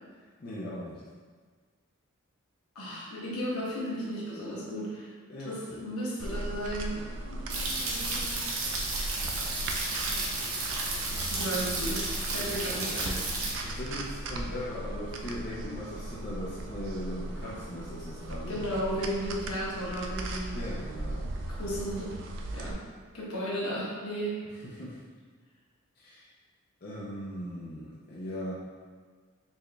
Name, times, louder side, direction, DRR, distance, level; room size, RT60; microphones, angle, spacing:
voice 1, 0.4-1.0 5.3-5.5 12.7-12.8 13.6-18.6 20.5-21.3 24.5-25.0 26.0-26.3 26.8-28.5, equal, 45° left, -7 dB, 0.5 m, -39 dB
voice 2, 2.7-5.1 5.4-8.4 11.3-13.2 18.5-20.6 21.6-22.1 22.5-22.8 23.1-24.4, equal, 90° left, -6 dB, 1.0 m, -34 dB
sound 1, 6.2-22.7, right 1 dB, 55° right, 0.3 m, -38 dB
sound 2, 7.5-13.5, right 2 dB, 80° right, 0.7 m, -32 dB
4.3 x 3.1 x 2.2 m, 1.5 s
head